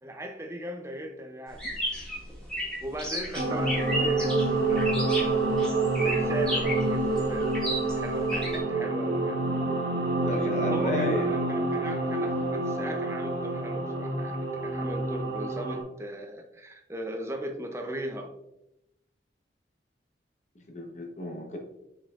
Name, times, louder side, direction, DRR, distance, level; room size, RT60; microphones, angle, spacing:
voice 1, 0.0-1.6 2.8-5.6 6.0-7.6 8.0-9.4 10.6-18.3, right 1 dB, 15° right, 4 dB, 0.6 m, -38 dB
sound 1, 1.5-8.6, equal, 5° left, 2.0 m, -33 dB
sound 2, 3.3-15.8, right 2 dB, 85° right, 2.2 m, -27 dB
voice 2, 10.2-11.3 20.5-21.6, left 1 dB, 40° left, 2 dB, 1.1 m, -32 dB
7.3 x 5.4 x 2.5 m, 0.88 s
head